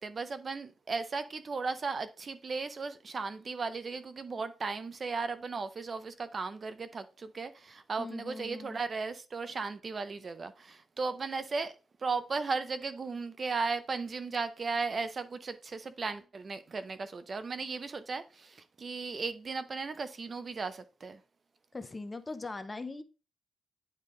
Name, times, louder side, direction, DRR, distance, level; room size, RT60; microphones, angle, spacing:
voice 1, 0.0-21.2, right 4 dB, 35° right, 0.6 m, -36 dB
voice 2, 8.0-8.8 21.7-23.0, left 3 dB, 20° left, 0.6 m, -40 dB
9.6 x 3.6 x 3.7 m
wide cardioid pair, 140°, 0 cm